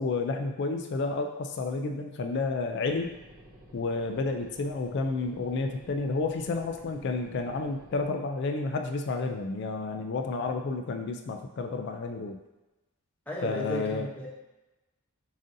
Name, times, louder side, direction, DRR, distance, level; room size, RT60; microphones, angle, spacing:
voice 1, 0.0-3.1 3.7-12.4 13.4-14.1, left 3 dB, 55° left, 5 dB, 0.3 m, -31 dB
sound 1, 2.8-8.1, right 1 dB, 75° right, 1.3 m, -52 dB
voice 2, 13.3-14.3, equal, 5° left, -4 dB, 0.8 m, -34 dB
7.2 x 2.6 x 2.6 m, 1.0 s
head